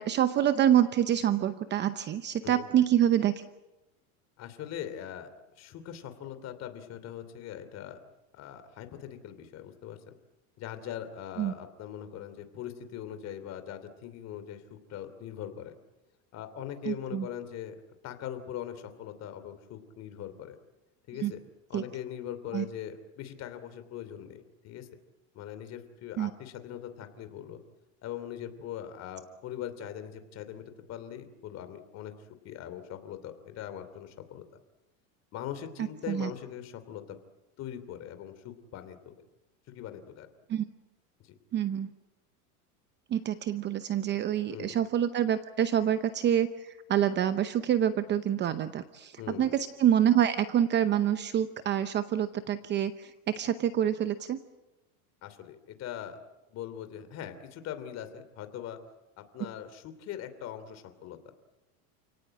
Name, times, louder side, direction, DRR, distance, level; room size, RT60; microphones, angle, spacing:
voice 1, 0.0-3.4 11.4-11.5 16.8-17.3 21.2-21.3 21.7-21.8 22.5-22.6 26.2-26.3 35.8-36.3 40.5-40.6 41.5-41.9 43.1-54.4, right 10 dB, 25° right, 12 dB, 0.8 m, -27 dB
voice 2, 4.4-5.3 5.5-8.0 8.3-10.2 10.6-15.7 16.3-17.8 18.0-20.6 21.1-21.4 21.7-24.9 25.3-27.6 28.0-32.1 32.4-34.4 35.3-37.2 37.6-39.0 39.7-40.3 41.2-41.3 44.5-44.7 49.2-49.5 55.2-56.2 56.5-58.8 59.2-61.2, left 10 dB, 35° left, 10 dB, 2.9 m, -41 dB
29.5 x 18.0 x 8.9 m, 1.0 s
supercardioid pair, 150°, 43 cm